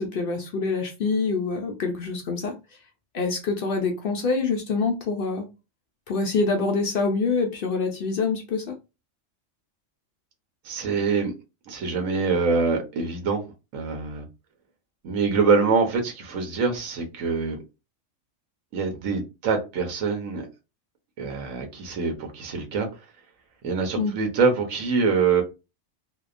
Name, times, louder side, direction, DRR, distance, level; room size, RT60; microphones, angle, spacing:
voice 1, 0.0-2.5 3.1-5.5 6.1-8.8 23.9-24.1, left 4 dB, 65° left, 0.6 m, -25 dB
voice 2, 10.6-11.3 11.7-13.4 13.7-14.3 15.0-17.6 18.7-20.4 21.2-22.9 23.6-25.4, right 4 dB, 85° right, 1.1 m, -24 dB
2.8 x 2.1 x 2.4 m
omnidirectional pair, 1.3 m